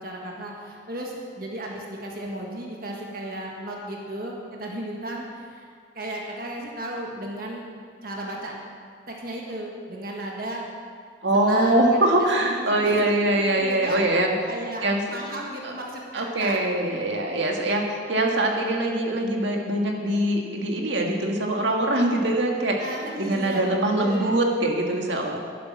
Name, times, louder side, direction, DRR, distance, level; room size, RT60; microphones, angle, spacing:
voice 1, 0.0-5.7 5.9-7.7 8.0-8.6 9.1-10.6 11.3-13.1 13.5-14.0 14.5-14.8 15.1-16.6 22.8-24.3, right 1 dB, 50° right, -1 dB, 1.7 m, -35 dB
voice 2, 11.2-14.3 14.8-15.0 15.6-15.7 16.1-22.9 23.2-25.4, right 1 dB, 70° right, 1 dB, 1.8 m, -23 dB
11.0 x 10.5 x 6.3 m, 2.1 s
head